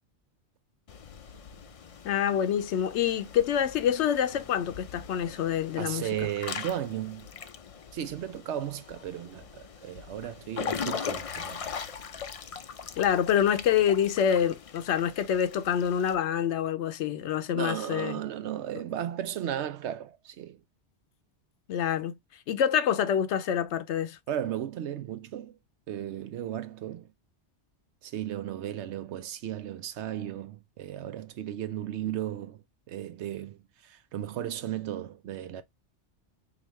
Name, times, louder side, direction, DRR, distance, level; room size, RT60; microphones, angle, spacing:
Water / Splash splatter / Drip, 0.9-16.1, left 6 dB, 60° left, 0.3 m, -40 dB
voice 1, 2.0-6.0 13.0-18.2 21.7-22.2 22.5-24.2, left 9 dB, 75° left, 0.9 m, -26 dB
voice 2, 5.8-7.3 7.9-11.7 17.5-20.6 24.3-25.6 25.9-27.1 28.0-35.6, right 11 dB, 75° right, 0.9 m, -35 dB
4.9 x 2.5 x 3.0 m
omnidirectional pair, 1.2 m